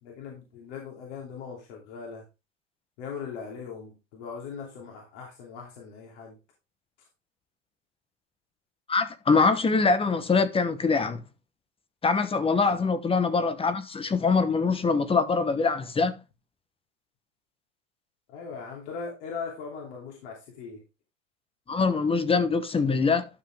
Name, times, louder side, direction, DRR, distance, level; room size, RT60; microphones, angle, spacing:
voice 1, 0.0-2.2 3.0-6.4 12.6-12.7 18.3-20.8, left 5 dB, 65° left, 3.0 m, -39 dB
voice 2, 8.9-11.2 12.0-16.2 21.7-23.3, left 4 dB, 15° left, 1.1 m, -24 dB
12.0 x 5.8 x 3.4 m
hypercardioid pair, 110°, 37 cm